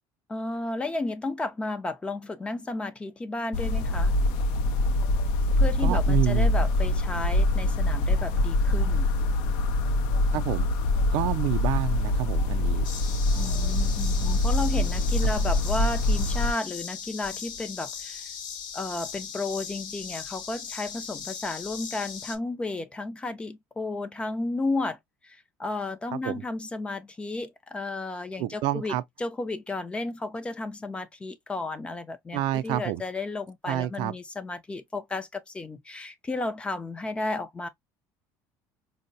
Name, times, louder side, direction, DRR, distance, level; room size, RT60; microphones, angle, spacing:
voice 1, 0.3-4.2 5.6-9.1 13.3-18.3 18.7-25.0 25.2-37.7, left 2 dB, 15° left, 0.4 m, -33 dB
sound 1, 3.5-16.5, left 2 dB, 80° left, 0.5 m, -24 dB
voice 2, 5.8-6.5 10.3-10.7 11.1-12.9 26.1-26.4 28.4-29.0 32.3-33.0 33.7-34.2, right 13 dB, 70° right, 0.4 m, -28 dB
sound 2, 12.8-22.4, left 7 dB, 60° left, 0.8 m, -39 dB
4.4 x 2.0 x 2.5 m
cardioid pair, 140°, 8 cm